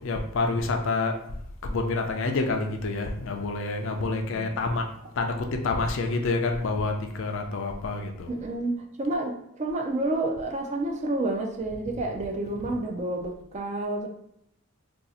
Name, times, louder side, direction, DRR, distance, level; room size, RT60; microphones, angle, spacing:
voice 1, 0.0-1.1 1.6-4.9 5.2-5.3 5.6-8.3, left 3 dB, 60° left, 4 dB, 0.4 m, -28 dB
voice 2, 4.0-4.5 8.3-14.1, right 2 dB, 30° right, 2 dB, 0.4 m, -30 dB
2.7 x 2.4 x 4.0 m, 0.75 s
head